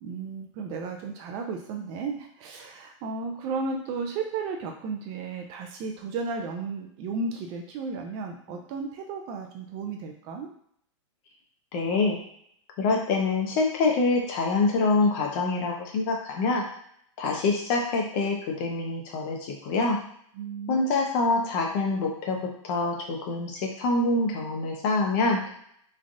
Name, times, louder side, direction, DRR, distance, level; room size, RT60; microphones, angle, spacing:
voice 1, 0.0-10.5 20.3-20.9, right 4 dB, 35° right, 3 dB, 0.4 m, -34 dB
voice 2, 11.7-12.2 12.8-16.6 17.2-20.0 20.7-25.4, left 3 dB, 40° left, 1 dB, 0.7 m, -25 dB
3.2 x 2.3 x 2.6 m, 0.67 s
hypercardioid pair, 135°, 17 cm